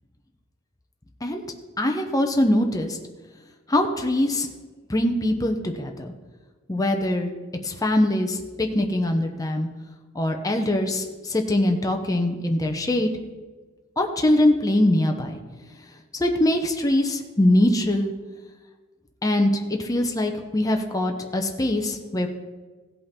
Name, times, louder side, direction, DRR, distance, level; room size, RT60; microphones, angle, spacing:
voice 1, 1.8-3.0 3.7-4.5 4.9-6.1 6.7-7.3 7.6-9.7 10.1-13.1 14.0-15.4 16.2-18.1 19.2-22.3, left 1 dB, 15° left, 3 dB, 0.7 m, -22 dB
16.0 x 5.5 x 4.3 m, 1.3 s
head